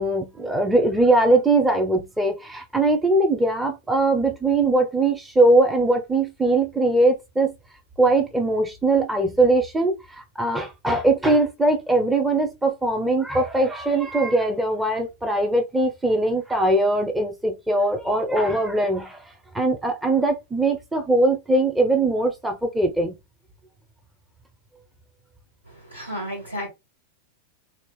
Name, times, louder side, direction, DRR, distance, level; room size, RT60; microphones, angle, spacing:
voice 1, 0.0-7.5 8.0-19.2 19.5-23.1, right 2 dB, 10° right, 0.7 m, -21 dB
voice 2, 25.9-26.7, equal, 85° right, 2.3 m, -32 dB
2.9 x 2.8 x 3.6 m
figure-of-eight pair, 90°, 0 cm